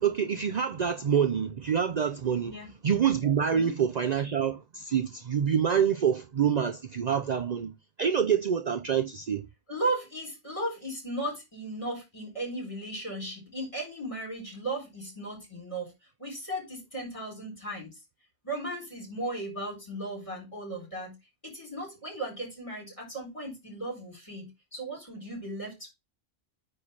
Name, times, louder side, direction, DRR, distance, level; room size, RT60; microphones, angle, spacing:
voice 1, 0.0-2.5 2.8-7.7 8.0-9.5, right 8 dB, 50° right, 0.6 m, -26 dB
voice 2, 9.7-15.9 16.2-18.0 18.4-21.1 21.4-25.9, right 1 dB, 30° left, 4.5 m, -36 dB
9.4 x 3.3 x 5.7 m
omnidirectional pair, 1.0 m